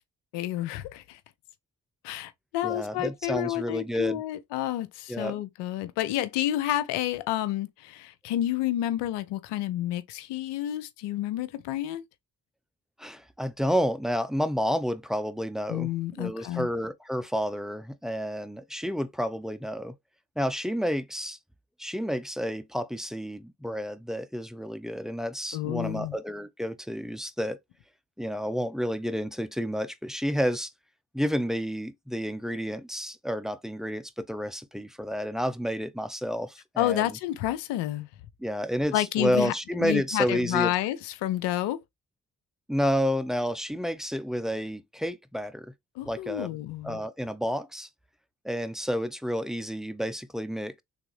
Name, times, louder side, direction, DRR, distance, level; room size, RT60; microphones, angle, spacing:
voice 1, 0.3-1.2 2.0-12.0 15.7-16.7 25.5-26.2 36.8-38.1 38.9-39.5 39.8-41.8 46.0-47.0, left 13 dB, 85° left, 0.5 m, -30 dB
voice 2, 2.6-4.2 5.1-5.4 13.0-19.9 20.4-21.4 21.8-27.6 28.2-30.7 31.1-37.2 38.4-40.7 42.7-45.7 46.1-46.6 46.8-47.9 48.4-50.8, equal, ahead, 0.4 m, -30 dB
3.4 x 2.6 x 3.1 m
hypercardioid pair, 40°, 41 cm